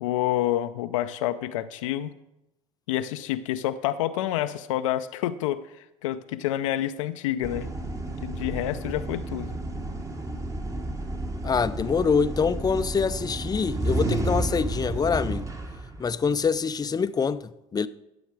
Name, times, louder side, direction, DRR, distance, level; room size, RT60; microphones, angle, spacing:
voice 1, 0.0-2.1 2.9-5.6 6.0-7.7 8.2-9.6, left 13 dB, 80° left, 0.5 m, -28 dB
sound 1, 7.4-16.5, right 2 dB, 20° right, 1.4 m, -31 dB
voice 2, 11.4-15.5 16.0-17.9, left 5 dB, 25° left, 0.5 m, -25 dB
14.0 x 7.2 x 4.7 m
hypercardioid pair, 70°, 16 cm